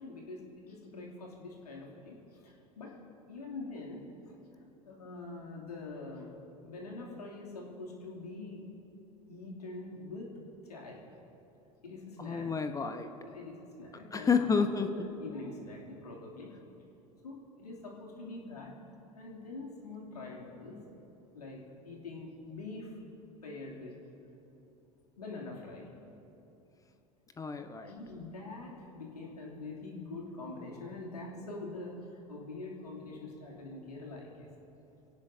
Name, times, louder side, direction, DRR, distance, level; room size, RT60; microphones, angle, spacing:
voice 1, 0.0-3.0 3.3-4.3 4.8-6.3 6.6-8.7 9.3-10.3 10.7-11.0 11.8-12.5 13.2-14.7 14.9-16.5 17.2-18.7 19.1-20.8 21.3-23.0 23.4-23.9 25.2-25.9 27.8-34.5, left 3 dB, 75° left, -2 dB, 3.0 m, -44 dB
voice 2, 12.2-13.1 14.1-14.9 27.4-27.9, left 5 dB, 15° left, 8 dB, 1.0 m, -30 dB
25.5 x 17.0 x 2.8 m, 2.9 s
figure-of-eight pair, 75°, 20 cm